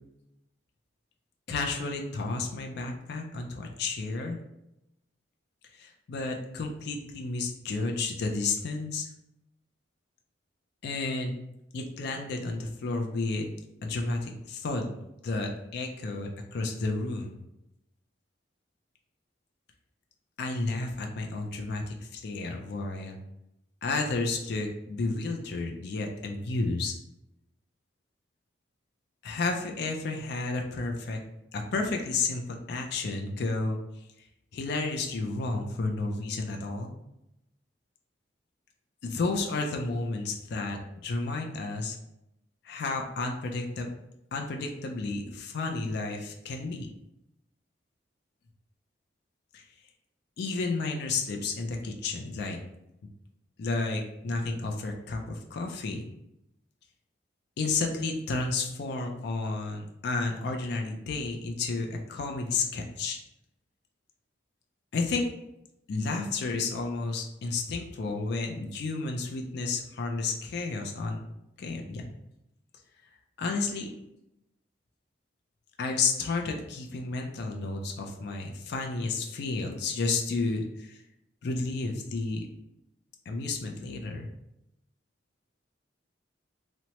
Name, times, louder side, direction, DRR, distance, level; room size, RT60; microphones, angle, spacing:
voice 1, 1.5-4.4 5.7-9.1 10.8-11.3 11.7-13.5 13.8-15.0 15.2-17.4 20.4-23.2 23.8-26.9 29.2-31.2 31.5-33.8 34.5-36.9 39.0-42.0 42.6-43.9 44.3-46.9 49.5-49.6 50.4-52.6 53.6-56.0 57.6-63.2 64.9-65.3 65.9-71.2 71.6-72.1 73.4-73.9 75.8-81.0 81.4-82.5 83.3-84.3, left 3 dB, 60° left, 2 dB, 0.4 m, -31 dB
2.9 x 2.1 x 2.8 m, 0.86 s
head